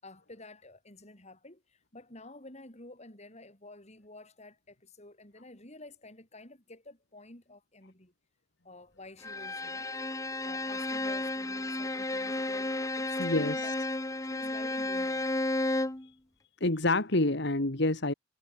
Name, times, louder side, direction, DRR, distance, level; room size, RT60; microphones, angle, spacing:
voice 1, 0.0-8.1 8.6-9.9 10.4-13.8 14.2-15.3, left 2 dB, 35° left, 5.5 m, -50 dB
Bowed string instrument, 9.2-16.1, left 2 dB, 15° left, 1.1 m, -32 dB
voice 2, 13.2-13.6 16.6-18.1, left 2 dB, 60° left, 2.0 m, -27 dB
head